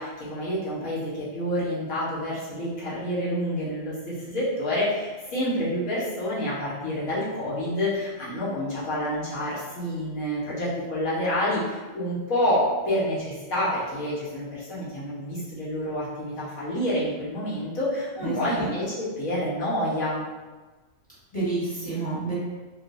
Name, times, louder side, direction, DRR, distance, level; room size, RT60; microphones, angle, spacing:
voice 1, 0.0-20.2, equal, 85° left, -8 dB, 1.5 m, -28 dB
voice 2, 18.2-18.7 21.3-22.3, right 3 dB, 5° left, -11 dB, 1.2 m, -29 dB
3.7 x 2.4 x 2.5 m, 1.2 s
omnidirectional pair, 1.4 m